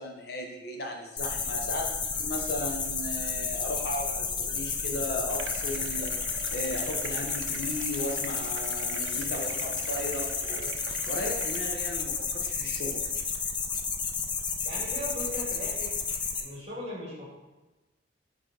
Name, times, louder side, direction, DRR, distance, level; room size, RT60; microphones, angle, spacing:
voice 1, 0.0-6.1 6.5-10.7 11.1-13.0, left 1 dB, 55° left, 1 dB, 0.9 m, -36 dB
sound 1, 1.2-16.4, left 5 dB, 25° left, 0.4 m, -32 dB
sound 2, 5.3-11.6, right 6 dB, 75° right, 0.5 m, -43 dB
voice 2, 14.6-15.9 16.4-17.2, equal, 30° right, -4 dB, 1.8 m, -38 dB
8.9 x 3.4 x 3.9 m, 1.1 s
head